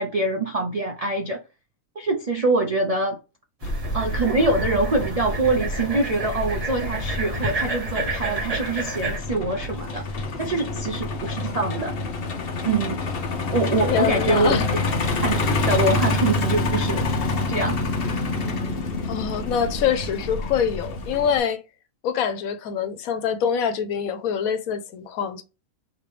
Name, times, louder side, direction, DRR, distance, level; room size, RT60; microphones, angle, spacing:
voice 1, 0.0-1.4 2.0-3.2 3.9-10.0 10.4-11.9 12.6-13.0 13.5-14.9 15.2-17.1 17.5-17.8, right 2 dB, 65° right, 0.3 m, -24 dB
Truck, 3.6-21.4, left 2 dB, 50° left, 0.9 m, -27 dB
sound 1, 3.6-9.2, right 2 dB, 30° right, 0.9 m, -31 dB
voice 2, 13.9-14.7 19.0-21.6 22.0-25.4, left 8 dB, 80° left, 1.1 m, -25 dB
5.2 x 2.9 x 3.3 m
omnidirectional pair, 1.5 m